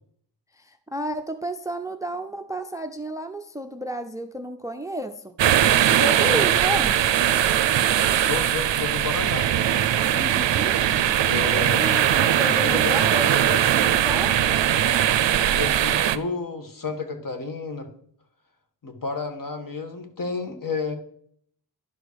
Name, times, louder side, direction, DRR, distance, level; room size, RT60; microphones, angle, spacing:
voice 1, 0.5-5.3 6.0-6.9 10.1-10.8 11.8-14.4, right 1 dB, 10° right, 8 dB, 0.5 m, -32 dB
sound 1, 5.4-16.2, right 10 dB, 85° right, 0.6 m, -20 dB
voice 2, 6.2-6.8 8.0-9.5 11.2-12.0 12.5-14.1 15.4-17.9 18.8-20.9, left 4 dB, 50° left, 6 dB, 1.5 m, -32 dB
11.0 x 5.0 x 6.1 m, 0.64 s
wide cardioid pair, 145°, 43 cm